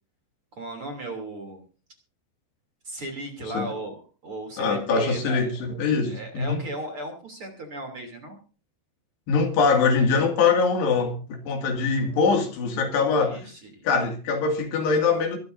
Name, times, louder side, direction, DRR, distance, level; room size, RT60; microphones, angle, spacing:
voice 1, 0.5-1.6 2.8-5.5 6.1-8.4 13.2-13.8, right 2 dB, 35° right, 3.4 m, -36 dB
voice 2, 4.6-6.6 9.3-11.2 11.5-13.5 13.8-15.4, left 4 dB, 70° left, 4.3 m, -23 dB
24.0 x 12.0 x 2.7 m
omnidirectional pair, 5.1 m